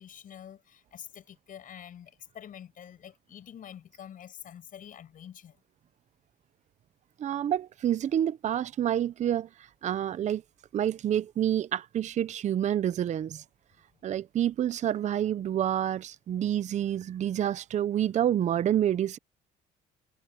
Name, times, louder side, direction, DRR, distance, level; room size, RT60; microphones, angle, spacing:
voice 1, 0.0-5.6, left 9 dB, 55° left, 6.1 m, -47 dB
voice 2, 7.2-9.5 9.8-10.4 10.7-13.4 14.0-19.2, right 10 dB, 45° right, 0.6 m, -28 dB
cardioid pair, 110°, 17 cm